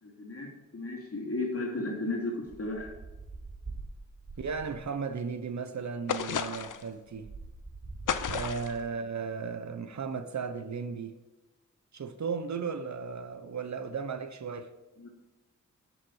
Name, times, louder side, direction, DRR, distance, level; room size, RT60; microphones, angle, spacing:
voice 1, 0.0-2.9 8.4-8.5 15.0-15.1, left 2 dB, 50° left, 3.2 m, -34 dB
sound 1, 2.4-5.0 6.0-6.1 6.4-9.0, right 3 dB, 30° right, 3.9 m, -45 dB
voice 2, 4.4-7.3 8.3-11.1 11.9-14.7, right 5 dB, 65° right, 1.0 m, -35 dB
sound 2, 6.1-6.9 8.1-8.8, left 7 dB, 80° left, 0.7 m, -32 dB
11.5 x 6.0 x 7.3 m
wide cardioid pair, 85°, 31 cm